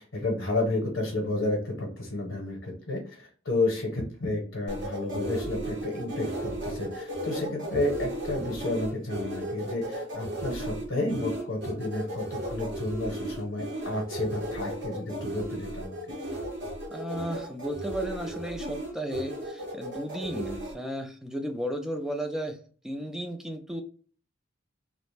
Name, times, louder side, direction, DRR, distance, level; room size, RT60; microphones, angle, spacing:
voice 1, 0.0-16.0, left 2 dB, 70° left, -1 dB, 0.8 m, -31 dB
sound 1, 4.7-20.7, right 1 dB, 60° right, 0.8 m, -35 dB
voice 2, 16.9-22.6 22.8-23.8, equal, 5° right, 5 dB, 0.3 m, -34 dB
2.4 x 2.1 x 3.1 m, 0.42 s
head